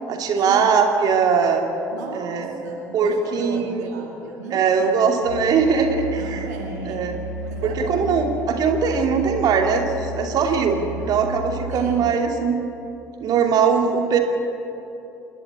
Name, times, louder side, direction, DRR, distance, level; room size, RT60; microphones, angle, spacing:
voice 1, 0.1-1.6 2.1-2.6 2.9-3.9 4.5-6.5 6.8-7.1 7.6-12.6 13.2-14.2, right 6 dB, 45° right, 3 dB, 2.7 m, -20 dB
voice 2, 1.9-5.1 6.2-7.1 7.4-8.2 11.7-12.0, right 3 dB, 75° right, -1 dB, 2.0 m, -36 dB
Musical instrument, 5.2-12.1, equal, 85° left, 1.5 m, -33 dB
28.5 x 12.0 x 8.4 m, 2.9 s
figure-of-eight pair, 55°, 9 cm